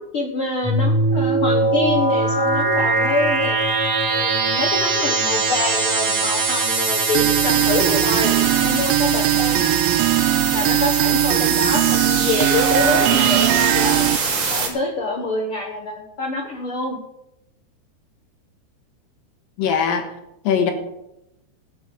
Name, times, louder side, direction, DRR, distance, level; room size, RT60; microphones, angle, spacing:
voice 1, 0.0-3.6 4.1-8.3 8.6-9.8 10.5-14.1 14.5-17.0, left 2 dB, 80° left, 1 dB, 1.2 m, -26 dB
sound 1, 0.6-14.7, right 3 dB, 45° right, 2.9 m, -22 dB
sound 2, 7.1-14.2, right 15 dB, 90° right, 2.0 m, -20 dB
voice 2, 19.6-20.0 20.4-20.7, left 7 dB, 65° left, 5 dB, 2.9 m, -20 dB
13.5 x 7.1 x 7.7 m, 0.88 s
omnidirectional pair, 4.6 m